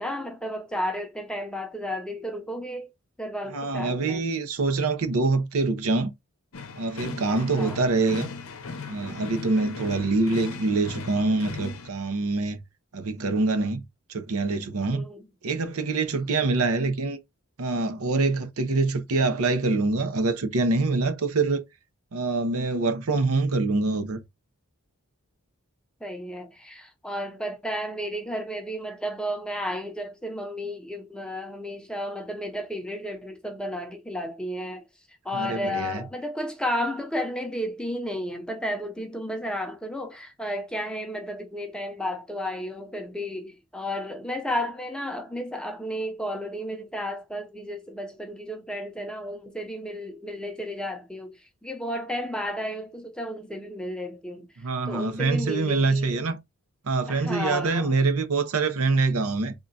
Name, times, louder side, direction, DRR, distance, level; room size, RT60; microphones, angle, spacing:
voice 1, 0.0-2.9 3.2-4.2 7.3-7.8 14.9-15.2 26.0-34.8 35.2-54.5 54.9-56.2 57.1-57.9, equal, 5° left, 0.6 m, -33 dB
voice 2, 3.5-6.1 6.8-8.3 8.9-12.6 12.9-13.8 14.1-15.0 15.4-17.2 17.6-21.6 22.1-24.2 35.3-36.0 54.6-56.4 56.8-59.5, right 3 dB, 80° right, 0.7 m, -25 dB
sound 1, 6.5-11.9, left 4 dB, 70° left, 0.7 m, -38 dB
3.7 x 2.3 x 3.9 m
head